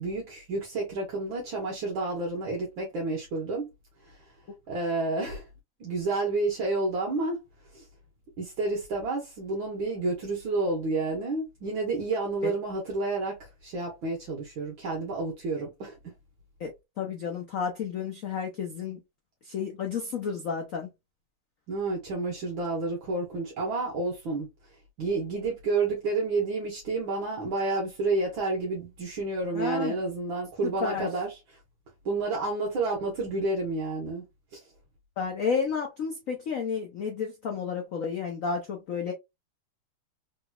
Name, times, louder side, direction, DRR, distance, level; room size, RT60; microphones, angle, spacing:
voice 1, 0.0-3.7 4.1-4.2 4.7-5.4 5.8-7.4 7.7-7.8 8.4-16.0 21.7-24.5 25.0-31.4 32.1-34.2 34.5-34.6, right 3 dB, 65° right, 1.8 m, -30 dB
voice 2, 16.6-19.0 19.4-20.9 29.5-30.0 30.6-31.1 35.2-39.1, left 6 dB, 85° left, 0.7 m, -31 dB
4.1 x 2.9 x 2.3 m
omnidirectional pair, 2.4 m